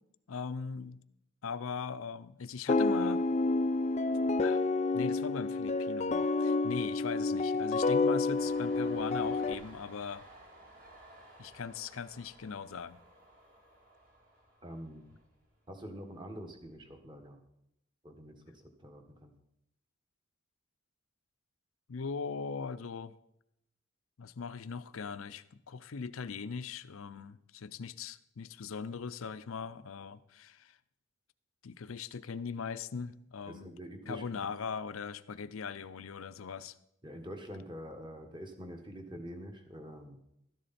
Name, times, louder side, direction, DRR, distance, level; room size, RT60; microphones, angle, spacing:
voice 1, 0.3-1.0 1.4-3.3 4.4-4.6 4.9-10.2 11.4-13.0 21.9-23.1 24.2-30.8 31.6-33.7 34.1-36.7, left 5 dB, 80° left, 14 dB, 0.5 m, -40 dB
sound 1, 2.7-9.5, left 3 dB, 35° left, 0.4 m, -29 dB
Train, 8.3-15.8 16.1-17.0, right 1 dB, 40° right, 2.7 m, -56 dB
voice 2, 14.6-15.1 15.7-17.4 18.0-19.3 33.5-34.5 37.0-40.2, equal, 20° right, 4 dB, 1.4 m, -46 dB
13.0 x 11.0 x 4.2 m, 0.82 s
head